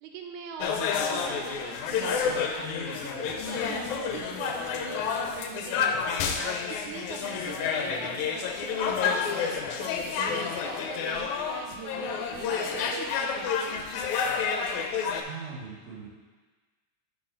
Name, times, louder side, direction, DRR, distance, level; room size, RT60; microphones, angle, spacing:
voice 1, 0.0-6.0 6.4-13.6, right 6 dB, 85° right, 4 dB, 2.2 m, -42 dB
sound 1, 0.6-15.2, left 6 dB, 90° left, 2.0 m, -29 dB
voice 2, 15.1-16.1, right 6 dB, 55° right, -6 dB, 2.4 m, -41 dB
10.5 x 4.8 x 3.8 m, 1.3 s
omnidirectional pair, 3.4 m